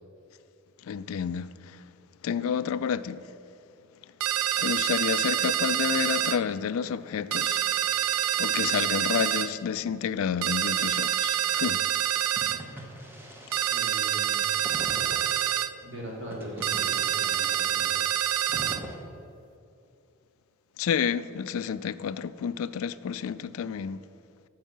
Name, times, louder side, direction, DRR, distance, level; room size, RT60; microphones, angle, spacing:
voice 1, 0.8-1.8 2.2-3.3 4.6-7.7 8.4-11.8 20.8-24.0, left 7 dB, 70° left, 0.3 m, -30 dB
sound 1, 4.2-6.4 7.3-9.5 10.4-12.6 13.5-15.7 16.6-18.8, right 10 dB, 85° right, 0.4 m, -27 dB
sound 2, 12.4-15.6 16.3-19.0, right 1 dB, 10° right, 0.9 m, -42 dB
voice 2, 13.7-14.6 15.8-17.9, equal, 55° right, 2.4 m, -40 dB
11.0 x 4.7 x 7.4 m
head